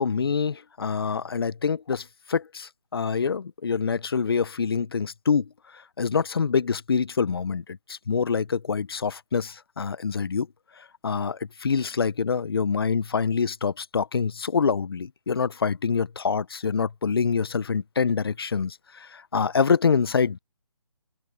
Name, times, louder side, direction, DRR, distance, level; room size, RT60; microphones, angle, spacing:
voice 1, 0.0-10.5 10.8-20.4, left 5 dB, 40° left, 0.5 m, -26 dB
open air
figure-of-eight pair, 165°, 19 cm